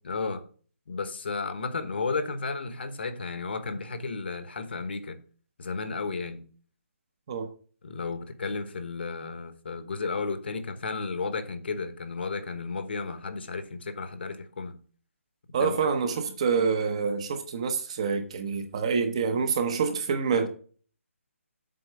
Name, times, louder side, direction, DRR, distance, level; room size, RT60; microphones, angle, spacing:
voice 1, 0.0-0.4 0.9-5.2 5.6-6.5 7.8-14.8 15.6-15.8, left 4 dB, 50° left, 1.0 m, -33 dB
voice 2, 15.5-20.5, right 5 dB, 25° right, 0.8 m, -27 dB
7.7 x 4.4 x 7.0 m
hypercardioid pair, 170°, 8 cm